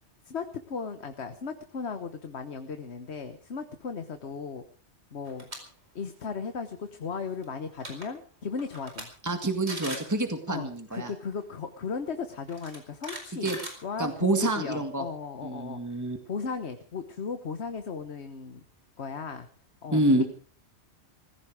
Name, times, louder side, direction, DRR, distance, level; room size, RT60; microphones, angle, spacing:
voice 1, 0.2-4.6 5.1-5.5 5.9-9.1 10.5-13.5 13.8-18.6 19.0-19.5 19.8-20.2, left 5 dB, 65° left, 8 dB, 1.4 m, -36 dB
sound 1, 5.2-5.6 6.0-6.2 7.4-7.5 7.7-8.1 8.6-9.0 9.4-9.5 9.7-10.1 11.3-11.4 12.5-14.3, right 1 dB, 65° right, 4.9 m, -39 dB
voice 2, 9.2-11.1 13.4-13.6 14.0-15.0 15.4-16.2 19.9-20.2, right 2 dB, 15° right, 6 dB, 2.0 m, -27 dB
18.5 x 15.5 x 4.9 m, 0.41 s
omnidirectional pair, 1.2 m